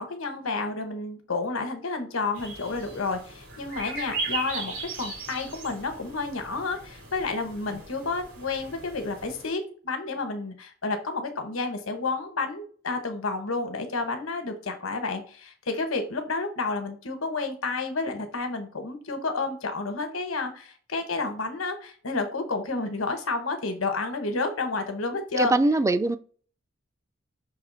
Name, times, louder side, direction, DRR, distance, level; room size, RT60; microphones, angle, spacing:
voice 1, 0.0-25.5, left 3 dB, 85° left, 1.2 m, -30 dB
sound 1, 2.3-9.5, right 3 dB, 70° right, 2.9 m, -38 dB
voice 2, 25.4-26.2, right 2 dB, 15° right, 0.3 m, -22 dB
5.7 x 3.3 x 5.5 m
head